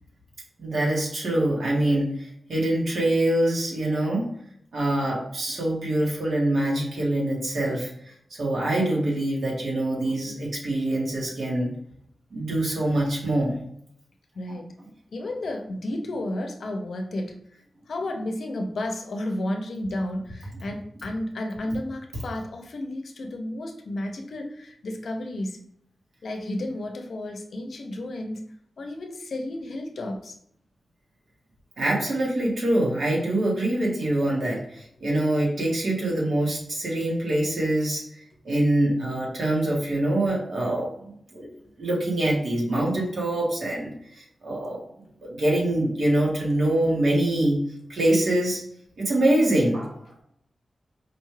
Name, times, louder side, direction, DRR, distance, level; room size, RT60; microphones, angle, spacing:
voice 1, 0.6-4.3 4.7-8.1 8.4-11.8 12.3-13.6 14.5-14.6 31.8-38.0 38.4-41.5 41.8-44.8 45.2-47.6 47.9-48.6 49.0-49.9, right 1 dB, 70° right, -3 dB, 1.5 m, -24 dB
voice 2, 14.3-14.7 15.1-17.4 17.9-25.6 26.2-28.4 28.8-30.4, left 1 dB, 65° left, 4 dB, 0.6 m, -32 dB
4.9 x 2.4 x 3.2 m, 0.70 s
wide cardioid pair, 165°, 0 cm